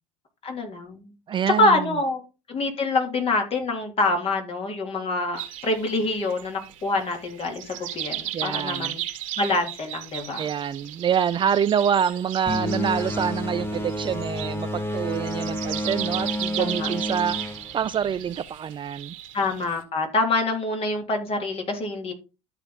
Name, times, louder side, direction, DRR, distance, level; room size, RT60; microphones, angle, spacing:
voice 1, 0.4-1.1 1.6-2.2 2.5-9.0 9.4-10.4 16.6-16.9 19.3-22.1, left 2 dB, 35° left, 3.0 m, -26 dB
voice 2, 1.3-1.9 8.3-9.0 10.4-17.4 17.7-19.1, right 8 dB, 30° right, 0.4 m, -26 dB
sound 1, 5.3-19.8, right 12 dB, 70° right, 1.8 m, -36 dB
sound 2, 12.5-18.5, left 1 dB, 15° left, 1.1 m, -30 dB
12.5 x 4.3 x 3.8 m
hypercardioid pair, 75°, 17 cm